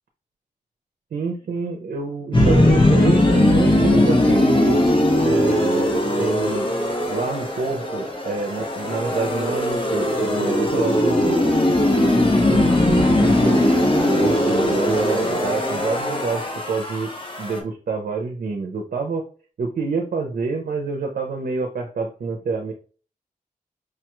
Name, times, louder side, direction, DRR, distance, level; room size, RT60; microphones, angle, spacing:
voice 1, 1.1-4.8 5.2-6.7 7.1-11.5 11.9-13.7 14.1-19.2 19.6-22.7, right 4 dB, 85° right, 3 dB, 0.6 m, -27 dB
sound 1, 2.3-17.6, left 1 dB, 35° left, 1.2 m, -19 dB
4.9 x 2.3 x 3.0 m, 0.39 s
wide cardioid pair, 75°, 14 cm